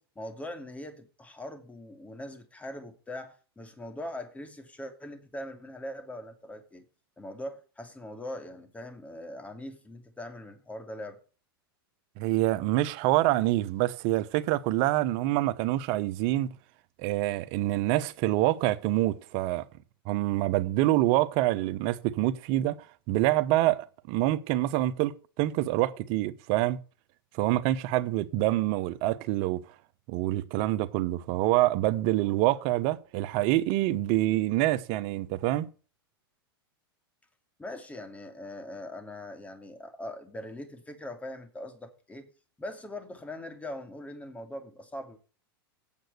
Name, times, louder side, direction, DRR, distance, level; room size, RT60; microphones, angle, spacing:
voice 1, 0.0-6.8 7.2-11.2 37.6-42.3 42.6-45.2, left 1 dB, 10° left, 2.7 m, -41 dB
voice 2, 12.2-16.5 17.0-19.7 20.1-26.8 27.3-29.6 30.1-35.7, right 16 dB, 50° right, 1.0 m, -26 dB
8.7 x 7.8 x 8.0 m
hypercardioid pair, 105°, 12 cm